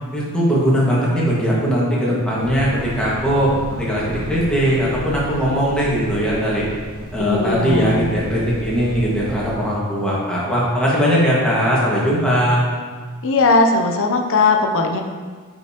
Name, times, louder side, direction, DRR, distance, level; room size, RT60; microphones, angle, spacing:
voice 1, 0.1-6.7 7.1-12.6, equal, 5° left, -7 dB, 1.7 m, -19 dB
sound 1, 2.4-9.5, equal, 70° right, 1.4 m, -33 dB
voice 2, 7.2-8.1 13.2-15.0, left 3 dB, 60° left, 3 dB, 0.6 m, -18 dB
8.8 x 5.4 x 2.9 m, 1.5 s
head